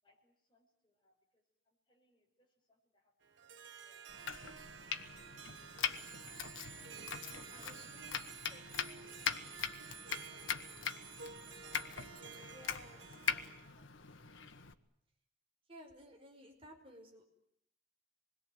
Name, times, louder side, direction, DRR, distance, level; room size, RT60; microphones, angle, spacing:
voice 1, 0.0-3.1 3.9-4.3 7.2-9.6 9.9-14.1, left 1 dB, 25° left, 2 dB, 5.3 m, -70 dB
Harp, 3.2-13.7, right 6 dB, 75° right, 1.3 m, -52 dB
Domestic sounds home sounds, 4.1-14.7, left 7 dB, 90° left, 1.4 m, -42 dB
Bicycle bell, 5.9-12.4, right 6 dB, 45° right, 3.7 m, -56 dB
voice 2, 7.3-8.2 12.3-13.1 15.7-17.2, equal, 30° right, 2 dB, 5.2 m, -56 dB
26.5 x 21.5 x 9.3 m, 0.73 s
head